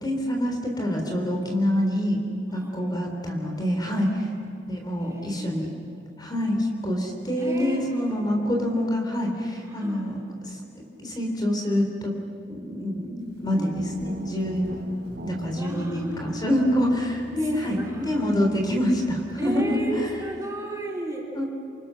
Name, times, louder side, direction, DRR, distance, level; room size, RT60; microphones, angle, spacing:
voice 1, 0.0-2.2 2.5-4.3 4.7-5.7 6.2-10.2 10.4-12.1 12.5-14.8 15.2-20.1 21.3-21.5, equal, 25° left, 1 dB, 3.6 m, -26 dB
voice 2, 2.5-2.9 5.1-5.7 7.4-7.8 9.8-10.1 13.5-14.0 15.5-16.6 17.4-18.2 19.4-21.3, right 1 dB, 20° right, -2 dB, 4.3 m, -35 dB
Guitar, 13.8-20.4, equal, 65° right, 4.6 m, -39 dB
28.5 x 27.0 x 6.3 m, 2.7 s
head